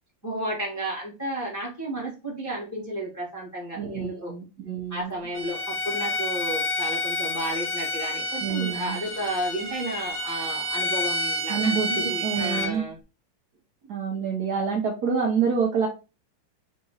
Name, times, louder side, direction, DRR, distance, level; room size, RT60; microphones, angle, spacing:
voice 1, 0.2-4.3 4.9-13.0, right 1 dB, 10° left, -3 dB, 1.0 m, -32 dB
voice 2, 3.7-5.1 8.4-9.0 11.5-12.9 13.9-15.9, right 6 dB, 60° right, 0 dB, 1.2 m, -27 dB
Bowed string instrument, 5.3-12.7, left 1 dB, 15° right, 0.6 m, -29 dB
3.8 x 3.0 x 3.9 m, 0.30 s
omnidirectional pair, 2.3 m